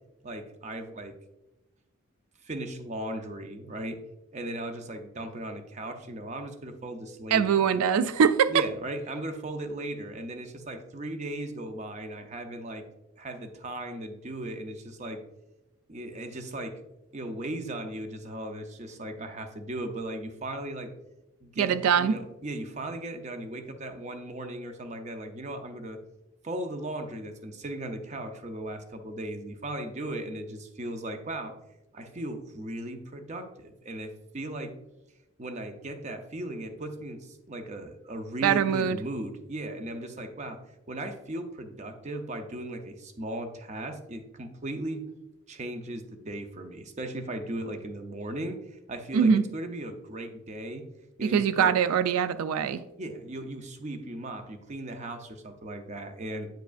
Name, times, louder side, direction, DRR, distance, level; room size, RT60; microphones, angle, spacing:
voice 1, 0.2-1.1 2.4-4.0 4.3-7.6 8.5-12.8 13.2-15.2 15.9-16.8 17.1-20.9 21.4-26.0 26.4-31.5 31.9-34.7 35.4-40.6 40.9-45.0 45.5-50.8 51.2-51.7 53.0-56.5, right 1 dB, 35° right, 6 dB, 0.5 m, -37 dB
voice 2, 7.3-8.6 21.6-22.2 38.4-39.0 49.1-49.4 51.2-52.8, right 7 dB, 90° right, 13 dB, 0.3 m, -23 dB
9.0 x 4.7 x 2.4 m, 0.98 s
head